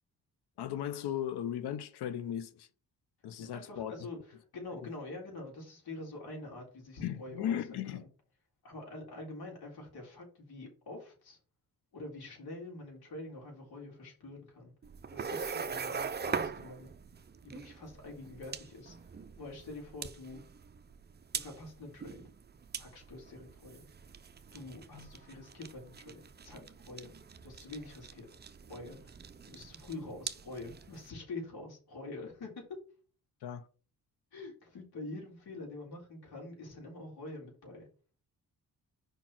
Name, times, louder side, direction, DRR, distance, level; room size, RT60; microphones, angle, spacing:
voice 1, 0.6-2.7 3.2-3.9 7.0-8.0 24.9-25.1 33.4-33.7, left 10 dB, 90° left, 0.9 m, -36 dB
voice 2, 3.4-7.6 8.0-8.1 8.6-11.4 11.9-14.7 15.1-16.9 17.4-19.1 19.4-20.4 21.3-22.2 22.8-23.9 24.5-27.1 27.4-28.3 28.7-29.2 29.5-32.6 34.3-37.9, left 2 dB, 75° left, 3.7 m, -46 dB
sound 1, 14.8-31.1, right 6 dB, 25° right, 0.5 m, -42 dB
5.2 x 4.5 x 5.9 m
cardioid pair, 105°, 38 cm